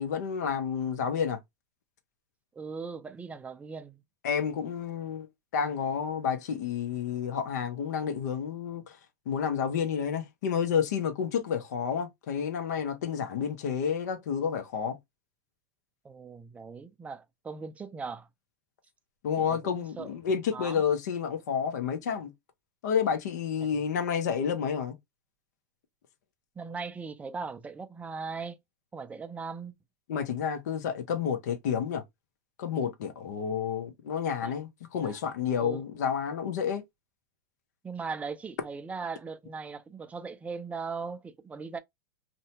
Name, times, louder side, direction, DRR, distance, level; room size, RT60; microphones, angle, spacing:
voice 1, 0.0-1.4 4.2-5.3 5.5-9.0 9.3-15.0 19.2-22.3 22.8-25.0 30.1-32.0 32.6-36.8, left 7 dB, 70° left, 0.8 m, -30 dB
voice 2, 2.6-4.0 16.0-18.3 19.4-20.1 20.5-20.8 26.6-28.6 28.9-29.8 34.4-34.6 35.0-35.2 35.6-35.8 37.8-41.8, right 5 dB, 15° right, 0.4 m, -39 dB
2.7 x 2.2 x 2.7 m
hypercardioid pair, 105°, 10 cm